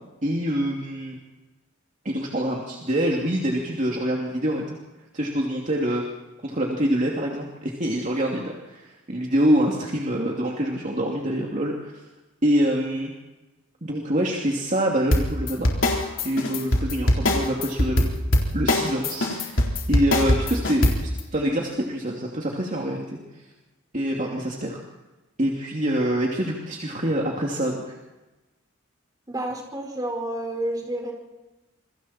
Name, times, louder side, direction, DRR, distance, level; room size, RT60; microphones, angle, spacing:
voice 1, 0.2-1.2 2.0-4.8 5.1-6.0 6.4-12.0 12.4-13.1 13.8-15.7 16.2-18.1 18.5-19.6 19.9-20.9 21.3-23.4 23.9-24.8 25.4-28.0, equal, 40° right, -1 dB, 2.8 m, -25 dB
sound 1, 15.1-21.2, left 1 dB, 65° left, 4.0 m, -21 dB
voice 2, 29.3-31.1, right 1 dB, 20° right, 1 dB, 5.1 m, -30 dB
27.5 x 24.0 x 4.4 m, 1.1 s
head